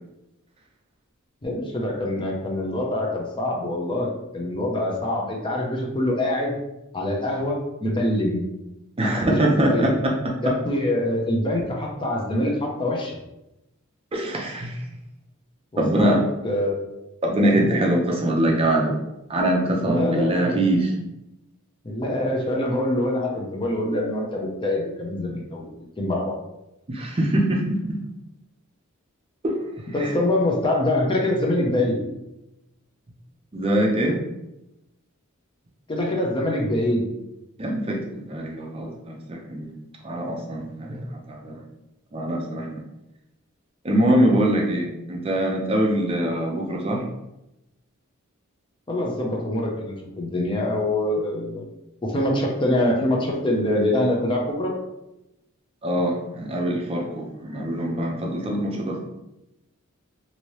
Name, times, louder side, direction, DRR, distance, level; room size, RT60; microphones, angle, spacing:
voice 1, 1.4-6.6 6.9-8.4 9.0-9.4 9.7-9.9 10.4-13.1 15.7-16.2 16.4-16.8 19.8-20.6 21.8-25.7 26.0-26.3 29.9-32.0 35.9-37.1 48.9-51.7 52.0-54.7, left 1 dB, 25° left, -1 dB, 0.6 m, -24 dB
voice 2, 9.0-10.5 14.1-14.8 15.8-16.2 17.2-18.9 19.3-20.9 26.9-28.0 29.4-29.6 30.0-30.1 33.5-34.2 37.6-39.7 40.0-41.6 42.1-42.8 43.8-47.0 55.8-59.0, right 1 dB, 25° right, -1 dB, 0.5 m, -23 dB
3.0 x 2.7 x 3.0 m, 0.91 s
head